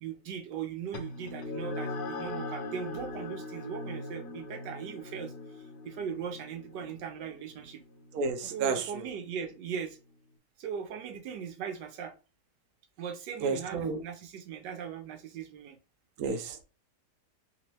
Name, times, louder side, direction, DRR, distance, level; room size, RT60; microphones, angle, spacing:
voice 1, 0.0-5.3 5.8-7.8 8.5-10.0 10.6-12.2 13.0-15.8, right 7 dB, 90° right, 1.3 m, -39 dB
sound 1, 0.9-9.8, left 2 dB, 75° left, 1.1 m, -41 dB
voice 2, 8.1-9.0 13.4-14.0 16.2-16.6, right 4 dB, 65° right, 1.1 m, -31 dB
3.5 x 2.9 x 3.0 m
omnidirectional pair, 1.8 m